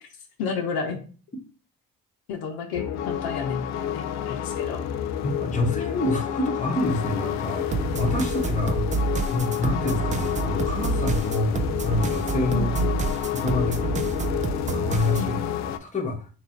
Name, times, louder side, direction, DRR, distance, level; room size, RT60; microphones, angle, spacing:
voice 1, 0.4-1.0 2.3-4.8 12.5-13.1 15.2-15.6, left 5 dB, 65° left, 3 dB, 0.8 m, -32 dB
sound 1, 2.7-15.8, left 9 dB, 45° left, 0.4 m, -29 dB
voice 2, 5.2-7.7 7.9-8.9 9.2-12.8 13.3-14.3 14.7-15.4 15.6-16.3, left 2 dB, 20° left, 2 dB, 1.0 m, -27 dB
sound 2, 7.7-15.3, right 4 dB, 20° right, 0.4 m, -28 dB
3.0 x 2.5 x 4.3 m, 0.39 s
hypercardioid pair, 60°, 39 cm